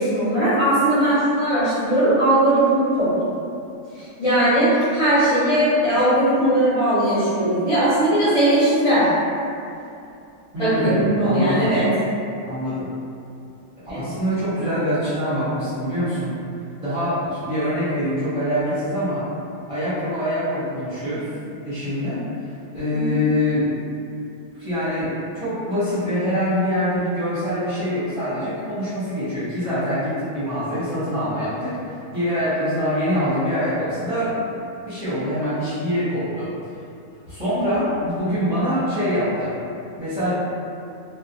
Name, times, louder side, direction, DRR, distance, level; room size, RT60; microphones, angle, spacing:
voice 1, 0.0-3.3 4.2-9.1 10.6-11.9 13.9-14.0 22.9-23.0, right 1 dB, 30° left, -15 dB, 0.8 m, -19 dB
voice 2, 10.5-11.7 12.5-12.9 13.9-16.3 16.8-19.2 19.7-21.3 21.6-23.8 24.5-34.5 34.8-36.5 37.3-39.5 40.0-40.3, equal, 30° right, -16 dB, 0.7 m, -24 dB
2.4 x 2.1 x 2.7 m, 2.6 s
omnidirectional pair, 1.5 m